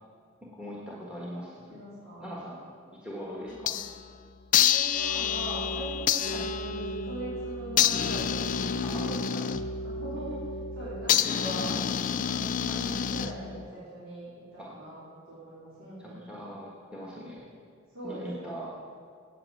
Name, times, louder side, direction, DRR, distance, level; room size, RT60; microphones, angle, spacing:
voice 1, 0.5-1.8 2.2-2.6 3.0-3.8 6.3-6.5 8.8-9.6 11.2-11.5 12.7-12.8 14.6-14.7 16.0-17.4 18.0-18.7, equal, 5° right, -4 dB, 1.4 m, -41 dB
voice 2, 1.7-2.4 3.5-3.7 4.5-9.1 9.8-16.2 17.9-18.6, right 1 dB, 80° right, -10 dB, 3.5 m, -41 dB
sound 1, 3.5-4.1 4.5-13.7, left 8 dB, 40° left, 0.3 m, -28 dB
8.9 x 8.4 x 7.6 m, 2.1 s
head